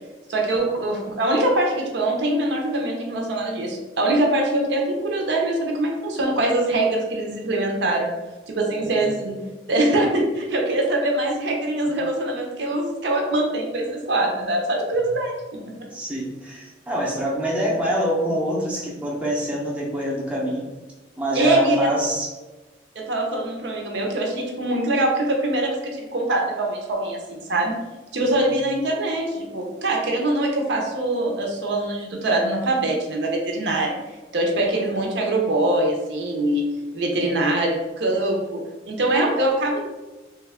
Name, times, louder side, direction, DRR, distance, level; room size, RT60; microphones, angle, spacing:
voice 1, 0.3-8.1 8.5-9.4 9.7-15.9 21.3-21.8 23.0-27.8 28.1-34.0 34.3-36.7 36.9-39.8, right 1 dB, 65° right, 0 dB, 0.6 m, -23 dB
voice 2, 15.9-20.7 21.2-22.3 37.2-37.6, equal, 5° right, -5 dB, 0.6 m, -26 dB
3.1 x 2.3 x 3.4 m, 1.2 s
head